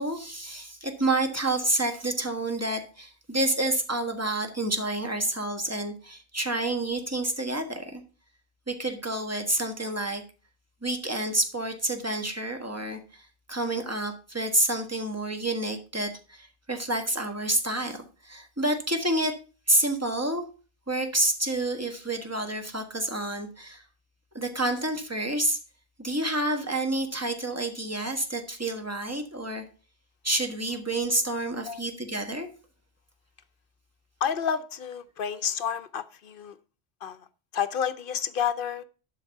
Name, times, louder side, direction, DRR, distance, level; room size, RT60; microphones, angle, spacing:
voice 1, 0.0-8.0 8.7-10.2 10.8-19.4 19.7-20.4 20.9-23.8 24.3-25.6 26.0-29.6 30.2-32.5, right 1 dB, 15° right, 4 dB, 1.4 m, -29 dB
voice 2, 34.2-36.6 37.0-37.2 37.5-38.8, left 8 dB, 60° left, 12 dB, 0.8 m, -30 dB
11.5 x 4.1 x 5.8 m, 0.35 s
omnidirectional pair, 1.1 m